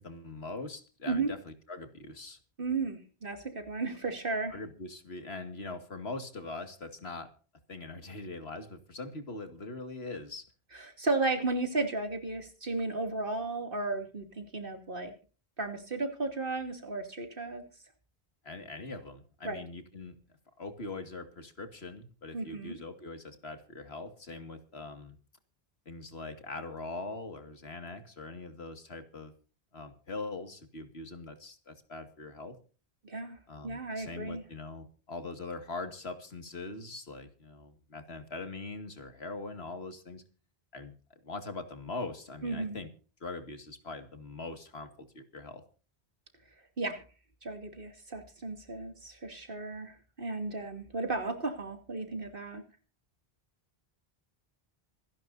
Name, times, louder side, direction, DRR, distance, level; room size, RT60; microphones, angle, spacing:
voice 1, 0.0-2.4 4.5-7.3 7.7-10.5 18.4-20.2 20.6-25.2 25.9-29.3 29.7-32.6 33.5-40.2 40.7-40.9 41.2-42.9 43.2-45.6, left 3 dB, 80° left, 8 dB, 2.4 m, -42 dB
voice 2, 2.6-4.6 10.7-15.1 15.6-17.6 19.4-19.6 22.3-22.8 33.0-33.4 33.6-34.4 42.4-42.8 46.8-47.0 47.4-52.6, right 3 dB, 55° right, 6 dB, 2.9 m, -34 dB
26.5 x 11.5 x 2.7 m, 0.37 s
omnidirectional pair, 1.1 m